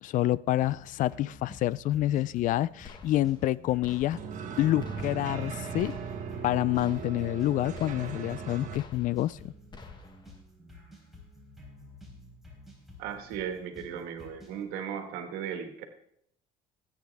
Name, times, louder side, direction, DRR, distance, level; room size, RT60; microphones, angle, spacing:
voice 1, 0.0-4.2 4.6-5.9 6.4-9.5, left 14 dB, 55° left, 21 dB, 0.4 m, -28 dB
Crub Dub (All), 0.6-14.6, left 1 dB, ahead, 4.1 m, -51 dB
sound 1, 2.8-3.5 3.8-4.5 4.8-5.5 5.8-6.5 6.8-7.5 7.7-8.4 8.7-9.4 9.7-10.4, left 4 dB, 30° left, 1.4 m, -50 dB
sound 2, 4.1-8.8, right 6 dB, 55° right, 1.5 m, -38 dB
voice 2, 13.0-15.8, right 8 dB, 90° right, 6 dB, 1.7 m, -36 dB
20.0 x 8.6 x 3.4 m, 0.72 s
cardioid pair, 125°, 16 cm